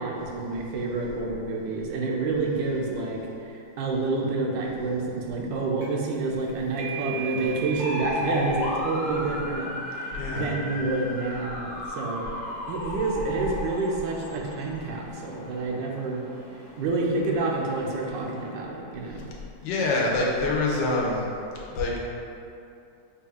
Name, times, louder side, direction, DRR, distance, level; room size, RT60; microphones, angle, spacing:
voice 1, 0.0-12.2 12.7-16.2 16.7-19.3, right 3 dB, 90° right, -1 dB, 1.3 m, -28 dB
sound 1, 5.8-6.1 6.4-13.7, right 4 dB, 65° right, 0.6 m, -40 dB
sound 2, 7.8-18.5, left 2 dB, 70° left, 1.2 m, -35 dB
voice 2, 10.1-10.6 19.1-19.2 19.6-21.3 21.7-22.0, left 2 dB, 85° left, -3 dB, 1.4 m, -26 dB
5.3 x 2.3 x 3.4 m, 2.6 s
omnidirectional pair, 1.9 m